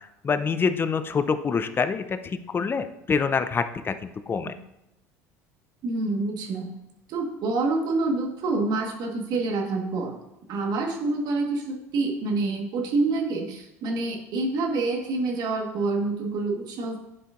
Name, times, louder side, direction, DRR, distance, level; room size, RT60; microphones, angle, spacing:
voice 1, 0.0-4.5, left 5 dB, 30° left, 11 dB, 0.6 m, -26 dB
voice 2, 5.8-6.7 7.1-10.2 10.5-17.0, right 3 dB, 55° right, 2 dB, 1.5 m, -27 dB
9.7 x 5.1 x 2.5 m, 0.90 s
hypercardioid pair, 80°, 8 cm